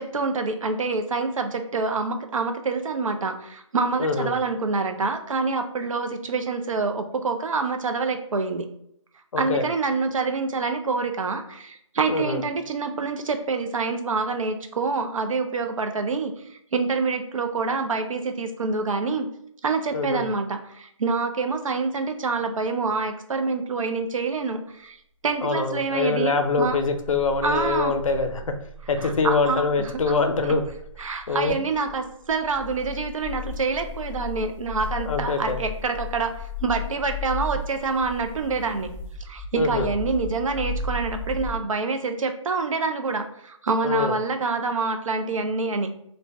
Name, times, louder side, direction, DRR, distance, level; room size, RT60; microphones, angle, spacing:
voice 1, 0.0-8.7 9.4-19.3 19.6-25.0 25.2-26.8 27.4-27.9 29.0-30.0 31.0-38.9 39.2-45.9, right 4 dB, 80° right, 6 dB, 0.5 m, -26 dB
voice 2, 4.0-4.3 9.3-9.7 12.1-12.4 19.9-20.3 25.4-28.4 28.9-30.6 31.3-31.6 35.1-35.6 39.6-39.9 43.8-44.2, left 4 dB, 80° left, 6 dB, 0.5 m, -24 dB
sound 1, 26.7-41.5, left 3 dB, 5° left, 0.6 m, -36 dB
2.5 x 2.1 x 3.2 m, 0.71 s
hypercardioid pair, 180°, 17 cm